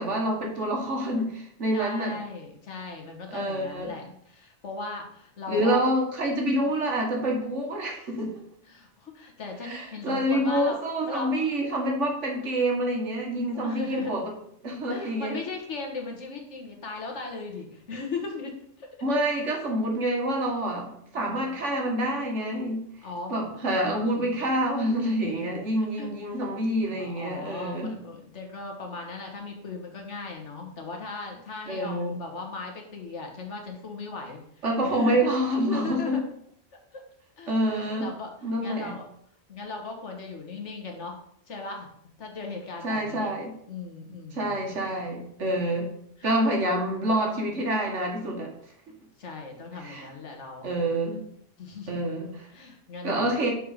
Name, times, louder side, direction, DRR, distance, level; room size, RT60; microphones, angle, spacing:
voice 1, 0.0-2.2 3.3-3.9 5.5-8.3 9.6-14.2 14.6-15.4 19.0-22.8 23.3-27.9 31.7-32.2 34.6-36.2 37.5-38.1 38.4-38.9 42.8-43.5 44.3-45.9 46.2-48.5 49.8-50.1 50.6-51.2 51.9-52.5 53.0-53.5, right 1 dB, 70° right, 0 dB, 1.8 m, -27 dB
voice 2, 1.7-5.8 6.3-6.6 8.7-10.8 11.1-11.5 13.5-14.2 14.9-18.9 21.1-21.5 23.0-23.5 24.0-24.5 25.2-25.6 26.0-26.1 26.7-34.4 34.8-35.2 35.7-36.2 36.9-37.0 37.4-38.3 38.6-39.1 39.5-41.2 41.5-41.9 42.2-43.3 43.7-44.9 46.2-46.5 49.2-50.7 51.6-52.0 52.5-53.2, left 3 dB, 70° left, 2 dB, 1.6 m, -38 dB
6.5 x 4.4 x 5.0 m, 0.68 s
omnidirectional pair, 1.3 m